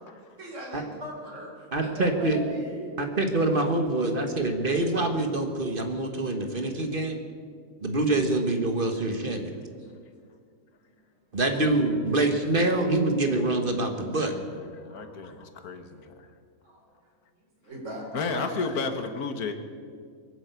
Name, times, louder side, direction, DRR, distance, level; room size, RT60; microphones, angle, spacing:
voice 1, 0.4-3.0 9.4-9.5 12.3-12.5 13.7-13.8 14.9-15.1 16.6-16.8 17.6-18.9, equal, 55° right, -4 dB, 3.9 m, -39 dB
voice 2, 1.7-2.4 3.0-7.2 7.8-9.6 11.3-14.4, right 2 dB, 40° right, 5 dB, 1.4 m, -25 dB
voice 3, 14.7-16.3 18.1-19.5, left 4 dB, 85° left, 8 dB, 1.7 m, -32 dB
22.0 x 8.0 x 8.2 m, 2.1 s
omnidirectional pair, 1.6 m